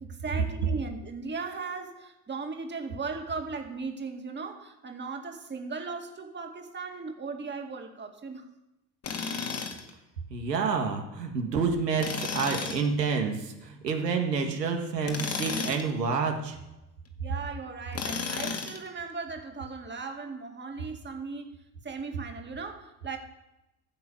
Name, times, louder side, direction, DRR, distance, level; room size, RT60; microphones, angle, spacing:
voice 1, 0.0-8.4 17.2-21.6 21.8-23.2, right 4 dB, 20° right, 4 dB, 2.2 m, -37 dB
Tools, 9.0-9.9 12.0-12.9 15.0-15.9 17.9-18.9, left 5 dB, 30° left, 2.1 m, -33 dB
voice 2, 10.3-16.6, right 5 dB, 80° right, 3 dB, 1.9 m, -28 dB
15.5 x 6.1 x 7.0 m, 0.93 s
figure-of-eight pair, 65°, 48 cm